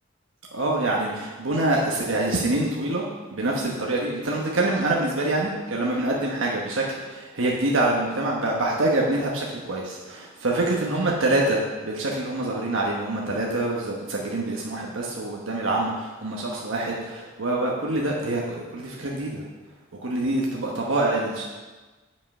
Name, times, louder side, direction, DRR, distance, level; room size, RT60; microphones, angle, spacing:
voice 1, 0.5-3.0 3.3-19.4 20.0-21.4, right 2 dB, 80° right, -2 dB, 1.1 m, -25 dB
7.7 x 5.4 x 5.5 m, 1.3 s
head